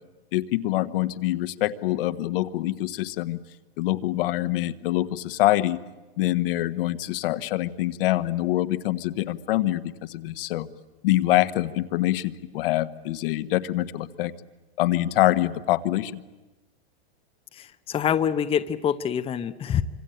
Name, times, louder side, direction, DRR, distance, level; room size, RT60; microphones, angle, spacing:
voice 1, 0.3-3.4 3.8-5.8 6.2-10.7 11.0-14.3 14.8-16.2, left 15 dB, 60° left, 11 dB, 1.3 m, -25 dB
voice 2, 17.5-19.8, left 8 dB, 15° left, 9 dB, 0.8 m, -26 dB
26.0 x 25.5 x 9.0 m, 1.1 s
hypercardioid pair, 130°, 32 cm